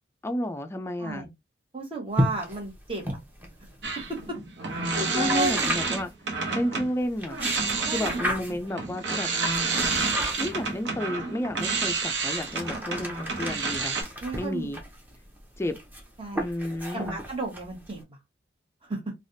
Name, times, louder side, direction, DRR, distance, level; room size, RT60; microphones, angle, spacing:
voice 1, 0.2-1.3 5.2-6.1 6.5-7.4 7.9-9.3 10.4-14.0 14.4-14.8 15.6-15.8 16.4-17.2, equal, 15° left, 0.3 m, -31 dB
voice 2, 1.7-3.0 4.1-4.4 4.7-5.7 7.8-8.1 14.2-14.7 16.2-16.5 16.9-18.2 18.8-19.1, right 1 dB, 30° right, 1.2 m, -33 dB
sound 1, 2.1-4.3 5.3-6.1 7.0-8.7 9.4-10.8 11.6-18.0, equal, 10° right, 0.8 m, -34 dB
sound 2, 3.8-6.9 7.3-14.0, right 4 dB, 75° right, 0.9 m, -29 dB
3.3 x 2.3 x 2.6 m
head